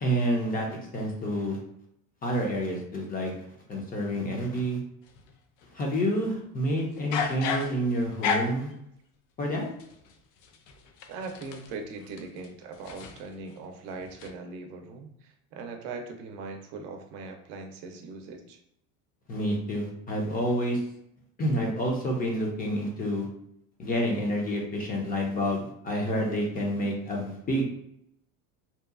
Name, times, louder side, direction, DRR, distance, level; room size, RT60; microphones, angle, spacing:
voice 1, 0.0-1.6 2.2-3.4 3.7-4.8 5.7-8.7 9.4-9.7 19.3-20.8 21.4-23.3 23.8-27.6, equal, 25° left, 0 dB, 0.5 m, -28 dB
sound 1, 5.1-5.7 6.9-8.7 9.8-13.6 13.9-14.3, left 6 dB, 80° left, 0.5 m, -34 dB
voice 2, 11.1-18.6, right 4 dB, 75° right, 4 dB, 0.6 m, -40 dB
2.8 x 2.2 x 2.3 m, 0.75 s
cardioid pair, 140°, 38 cm